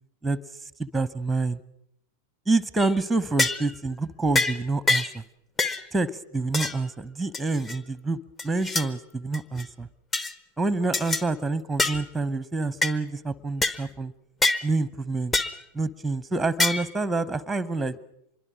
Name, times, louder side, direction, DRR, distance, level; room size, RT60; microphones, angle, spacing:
voice 1, 0.8-1.6 2.5-5.2 5.9-9.9 10.6-14.1 14.6-15.3 15.7-18.0, right 3 dB, 5° right, 20 dB, 0.8 m, -27 dB
sound 1, 2.8-3.0 3.4-3.7 4.3-4.6 4.9-5.2 5.6-5.8 6.5-6.8 7.3-7.8 8.4-8.9 9.3-9.6 10.1-10.3 10.9-11.2 11.8-12.0 12.8-12.9 13.6-13.8 14.4-14.6 15.3-15.6 16.6-16.9, left 2 dB, 20° left, 1.0 m, -25 dB
25.0 x 22.0 x 6.2 m, 0.78 s
figure-of-eight pair, 90°, 0 cm